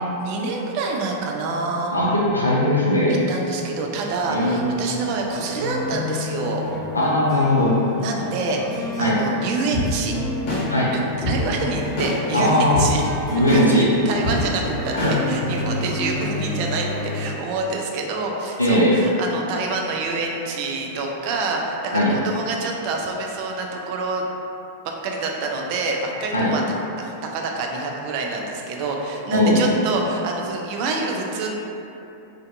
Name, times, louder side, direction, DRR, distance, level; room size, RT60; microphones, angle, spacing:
voice 1, 0.2-1.9 3.3-6.6 8.0-10.1 10.9-11.0 11.3-13.1 13.5-14.9 15.3-24.2 24.8-26.6 27.0-31.5, right 3 dB, 45° right, 0 dB, 0.3 m, -27 dB
voice 2, 1.9-3.1 4.3-4.8 6.9-7.7 9.0-9.2 10.7-10.9 12.3-12.8 13.3-13.9 14.9-15.1 18.6-19.0 21.9-22.1 26.3-26.5 29.3-29.7, left 1 dB, 85° left, -6 dB, 0.3 m, -19 dB
sound 1, 4.2-17.3, left 2 dB, 10° right, 0.8 m, -30 dB
sound 2, 9.7-9.9 10.5-10.6 11.2-11.4 12.0-12.1 12.7-12.9 13.5-13.6 14.2-14.4 15.0-15.1, left 1 dB, 45° left, 0.7 m, -24 dB
2.5 x 2.1 x 2.4 m, 2.8 s
figure-of-eight pair, 90°, 0 cm